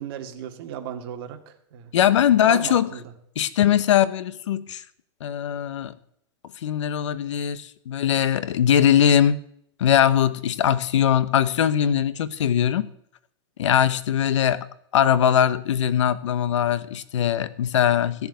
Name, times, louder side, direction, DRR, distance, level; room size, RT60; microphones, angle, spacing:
voice 1, 0.0-1.9 2.5-3.1, right 9 dB, 50° right, 5 dB, 2.3 m, -35 dB
voice 2, 1.9-2.9 3.4-4.8 5.2-5.9 6.6-9.4 9.8-12.9 13.6-14.7 14.9-18.3, left 9 dB, 85° left, 16 dB, 1.1 m, -21 dB
16.5 x 7.1 x 9.3 m, 0.71 s
supercardioid pair, 160°, 15 cm